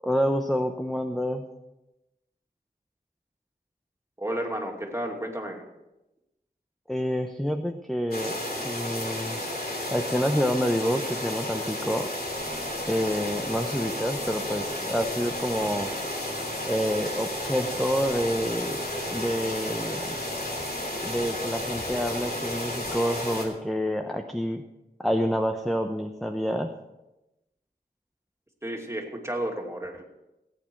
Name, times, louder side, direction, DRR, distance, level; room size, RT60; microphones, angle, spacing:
voice 1, 0.0-1.4 6.9-9.4 9.9-12.1 12.9-15.9 16.7-18.8 19.1-20.2 21.0-24.6 25.0-26.7, equal, ahead, 5 dB, 0.9 m, -28 dB
voice 2, 4.2-5.6 28.6-30.0, right 1 dB, 15° right, 1 dB, 2.6 m, -32 dB
sound 1, 8.1-23.5, left 1 dB, 65° left, 2.9 m, -32 dB
Water tap faucet, 12.2-22.9, equal, 85° left, 5.5 m, -49 dB
18.0 x 8.7 x 4.6 m, 0.96 s
wide cardioid pair, 45°, 17 cm